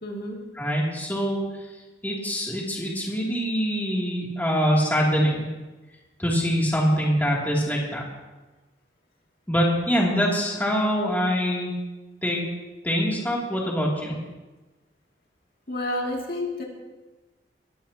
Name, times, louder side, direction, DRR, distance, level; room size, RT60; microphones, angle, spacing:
voice 1, 0.0-0.4 15.7-16.6, left 1 dB, 50° left, -2 dB, 2.6 m, -30 dB
voice 2, 0.6-1.4 2.0-5.5 6.2-8.0 9.5-11.7 12.2-12.4 12.8-14.1, equal, 10° left, -4 dB, 2.9 m, -24 dB
21.5 x 15.0 x 3.0 m, 1.2 s
head